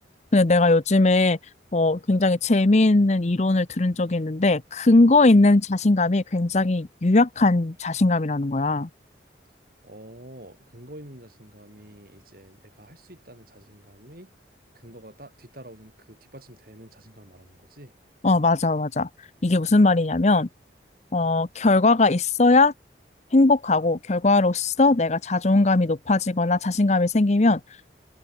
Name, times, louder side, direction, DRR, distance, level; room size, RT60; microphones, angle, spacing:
voice 1, 0.3-1.4 1.7-8.9 18.2-19.1 19.4-20.5 21.1-22.7 23.3-27.6, left 2 dB, 40° left, 0.7 m, -19 dB
voice 2, 9.8-14.3 14.7-17.9, right 1 dB, 55° right, 7.6 m, -47 dB
head